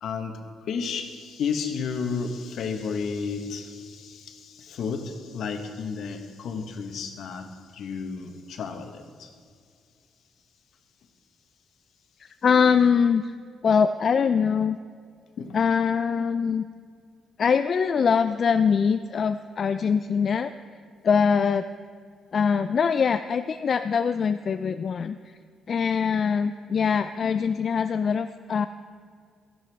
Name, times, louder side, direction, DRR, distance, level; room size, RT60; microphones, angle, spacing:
voice 1, 0.0-9.3 15.4-15.6, left 5 dB, 70° left, 6 dB, 1.1 m, -32 dB
voice 2, 12.2-13.3 13.6-14.8 15.5-16.7 17.4-20.5 21.0-21.7 22.3-25.2 25.7-28.7, left 6 dB, 50° left, 10 dB, 0.3 m, -23 dB
13.0 x 11.0 x 3.4 m, 2.2 s
cardioid pair, 90°, 0 cm